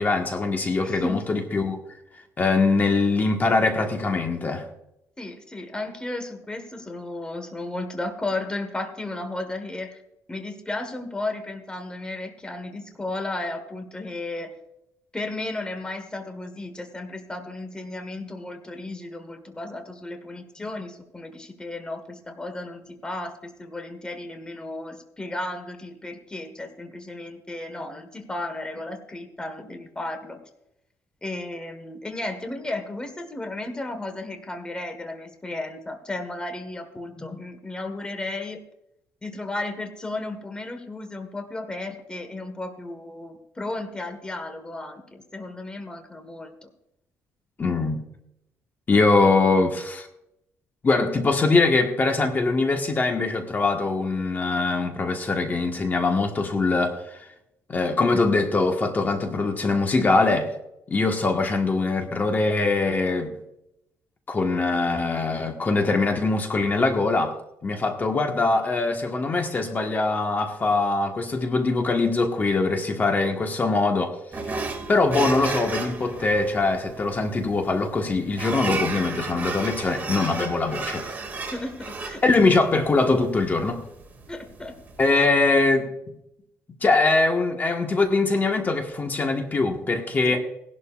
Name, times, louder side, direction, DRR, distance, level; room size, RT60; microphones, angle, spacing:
voice 1, 0.0-1.8 2.4-4.7 47.6-48.0 48.9-50.1 50.8-57.2 57.7-60.5 60.9-63.3 64.3-74.1 74.4-74.6 74.9-81.1 82.2-83.8 85.0-85.9 86.8-90.4, left 3 dB, 30° left, 1.5 m, -22 dB
voice 2, 0.8-1.2 5.2-10.0 10.3-14.5 15.1-30.4 31.2-38.6 39.2-46.7 81.5-82.2 84.3-84.8 85.1-85.2 90.2-90.4, left 2 dB, 15° left, 1.5 m, -34 dB
sound 1, 74.3-85.2, right 3 dB, 30° right, 2.3 m, -34 dB
19.0 x 11.5 x 2.5 m
cardioid pair, 120°, 6 cm